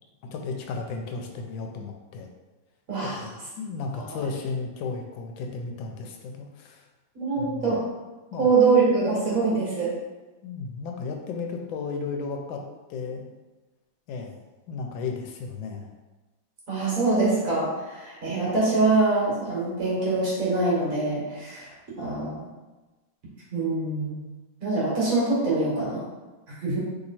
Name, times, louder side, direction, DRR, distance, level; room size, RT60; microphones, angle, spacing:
voice 1, 0.2-2.3 3.2-6.8 7.4-7.8 8.3-8.5 10.4-12.6 12.9-13.3 14.1-15.9, left 4 dB, 80° left, 3 dB, 1.3 m, -34 dB
voice 2, 7.1-7.8 8.4-9.9 16.7-21.7 22.0-22.5 23.5-24.2 24.6-26.0 26.6-26.8, right 3 dB, 50° right, -7 dB, 1.4 m, -24 dB
3.2 x 2.9 x 4.0 m, 1.2 s
omnidirectional pair, 2.1 m